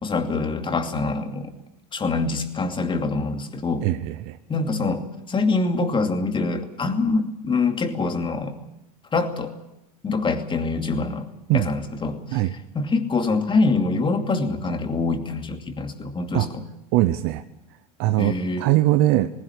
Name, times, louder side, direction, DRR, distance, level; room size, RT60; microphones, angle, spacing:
voice 1, 0.0-1.5 1.9-3.9 4.5-8.6 9.1-9.5 10.0-11.3 11.5-12.4 12.7-16.6 18.2-18.7, left 3 dB, 25° left, 6 dB, 2.6 m, -25 dB
voice 2, 3.8-4.4 11.5-11.7 12.3-12.5 16.3-16.5 16.9-17.4 18.0-19.3, right 16 dB, 65° right, 10 dB, 0.9 m, -21 dB
19.0 x 17.0 x 9.8 m, 0.90 s
hypercardioid pair, 85°, 19 cm